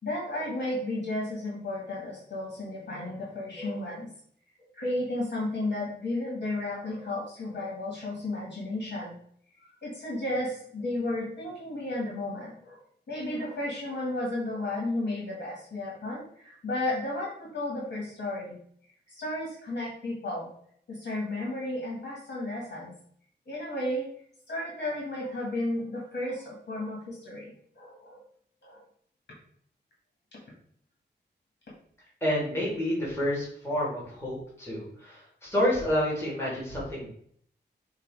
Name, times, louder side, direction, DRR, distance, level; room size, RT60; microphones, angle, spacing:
voice 1, 0.0-4.1 4.8-9.1 9.8-12.8 13.1-18.6 19.1-20.5 20.9-22.9 23.5-24.1 24.5-28.2 28.6-28.8, left 1 dB, 65° left, -4 dB, 2.2 m, -33 dB
voice 2, 32.2-37.1, left 1 dB, 15° left, -7 dB, 2.3 m, -29 dB
6.8 x 2.9 x 4.8 m, 0.63 s
wide cardioid pair, 165°, 18 cm